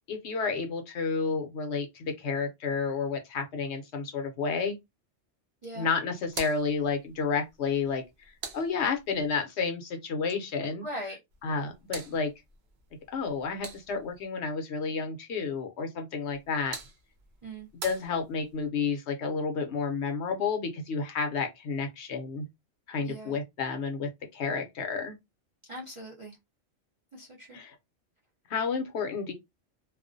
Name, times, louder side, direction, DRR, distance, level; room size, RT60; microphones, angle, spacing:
voice 1, 0.1-4.8 5.8-10.9 11.4-12.3 13.1-16.8 17.8-22.5 22.9-25.2 27.5-27.7 28.5-29.3, left 5 dB, 65° left, 0.8 m, -31 dB
sound 1, 6.2-9.3 11.3-14.2 16.2-18.7, right 5 dB, 65° right, 0.8 m, -46 dB
voice 2, 10.8-11.2 17.4-17.7 23.0-23.4 25.7-26.4 27.1-27.6, right 1 dB, 40° right, 0.4 m, -40 dB
2.4 x 2.0 x 2.5 m
omnidirectional pair, 1.3 m